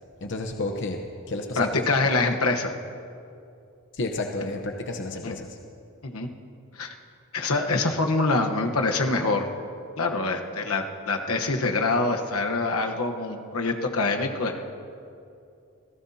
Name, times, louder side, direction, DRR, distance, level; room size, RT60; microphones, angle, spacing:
voice 1, 0.2-1.8 3.9-5.6, left 2 dB, 55° left, 3 dB, 0.9 m, -31 dB
voice 2, 1.6-2.7 5.2-5.3 6.0-6.3 6.7-6.9 7.3-9.5 10.0-14.6, left 3 dB, 80° left, 4 dB, 1.1 m, -25 dB
27.0 x 17.0 x 2.8 m, 2.6 s
head